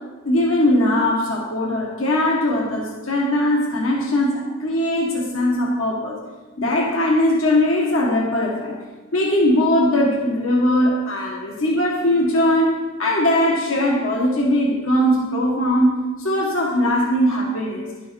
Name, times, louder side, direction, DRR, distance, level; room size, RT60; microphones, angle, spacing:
voice 1, 0.2-6.2 6.6-8.8 9.1-17.9, left 1 dB, 80° left, -2 dB, 1.5 m, -20 dB
11.0 x 6.8 x 4.5 m, 1.2 s
head